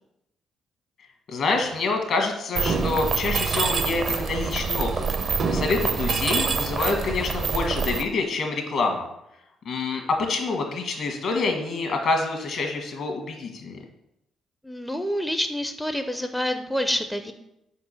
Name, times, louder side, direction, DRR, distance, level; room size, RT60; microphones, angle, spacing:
voice 1, 1.3-5.0 5.5-9.1 9.6-13.8, left 3 dB, 65° left, 3 dB, 1.5 m, -26 dB
Mechanisms, 2.6-8.0, right 5 dB, 50° right, 0.6 m, -26 dB
voice 2, 14.6-17.3, equal, 5° left, 7 dB, 0.4 m, -27 dB
4.8 x 4.5 x 5.7 m, 0.85 s
cardioid pair, 90°, 0 cm